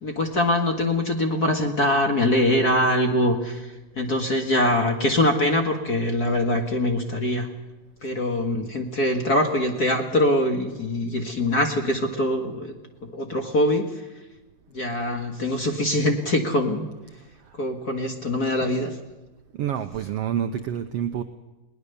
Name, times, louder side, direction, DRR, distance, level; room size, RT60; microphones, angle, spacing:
voice 1, 0.0-3.7 3.9-7.5 8.0-12.7 13.0-13.9 14.7-16.9 17.6-18.9, left 1 dB, 35° left, 4 dB, 1.7 m, -23 dB
voice 2, 19.6-21.2, right 9 dB, 85° right, 8 dB, 1.3 m, -27 dB
21.5 x 19.0 x 6.9 m, 1.1 s
omnidirectional pair, 3.9 m